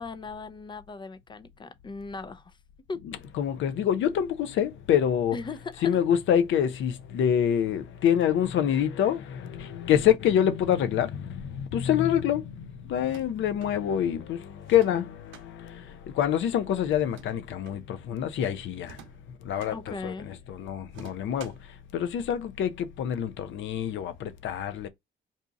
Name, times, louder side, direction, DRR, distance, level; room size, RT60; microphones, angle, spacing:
voice 1, 0.0-2.6 2.9-3.0 5.3-5.9 11.9-12.1 19.7-20.3, left 4 dB, 25° left, 0.4 m, -38 dB
voice 2, 3.0-5.4 5.8-19.0 19.4-21.5 21.9-24.9, left 9 dB, 75° left, 0.5 m, -26 dB
sound 1, 12.9-13.7 14.6-15.5 16.9-17.8 18.8-19.8 20.9-21.7, right 7 dB, 85° right, 0.7 m, -50 dB
2.7 x 2.4 x 3.9 m
cardioid pair, 90°, 20 cm